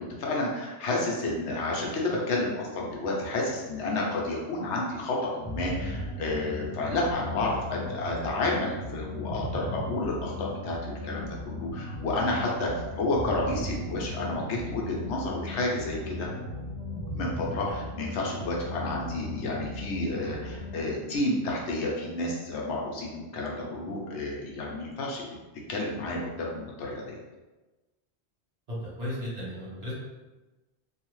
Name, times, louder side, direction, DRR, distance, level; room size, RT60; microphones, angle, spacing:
voice 1, 0.0-12.7 13.0-16.3 17.1-25.3 25.7-27.2, left 2 dB, 80° left, -2 dB, 1.0 m, -30 dB
sound 1, 5.4-20.8, left 1 dB, 35° left, 0.4 m, -37 dB
voice 2, 28.7-29.9, left 1 dB, 65° right, -8 dB, 1.4 m, -35 dB
2.8 x 2.4 x 3.1 m, 1.1 s
omnidirectional pair, 1.1 m